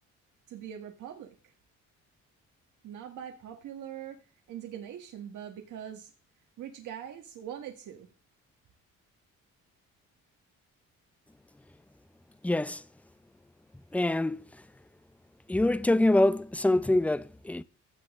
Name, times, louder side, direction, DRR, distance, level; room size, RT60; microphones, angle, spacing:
voice 1, 0.5-1.5 2.8-6.1 6.6-8.1, right 9 dB, 80° right, 1.7 m, -42 dB
voice 2, 12.4-12.8 13.9-14.4 15.5-17.6, left 1 dB, 5° left, 0.5 m, -25 dB
15.5 x 9.5 x 3.6 m
cardioid pair, 90°, 30 cm